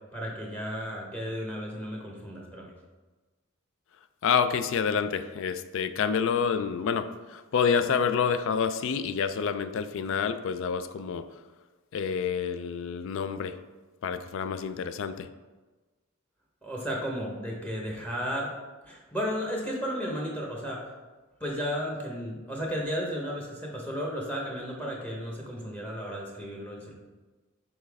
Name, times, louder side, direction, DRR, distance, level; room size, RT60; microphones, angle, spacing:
voice 1, 0.1-2.7 16.6-18.5 18.8-20.9 21.4-26.9, equal, 5° left, -2 dB, 1.0 m, -34 dB
voice 2, 4.2-11.2 11.9-13.5 14.0-15.3, left 6 dB, 65° left, 11 dB, 0.4 m, -28 dB
6.7 x 4.2 x 3.5 m, 1.3 s
head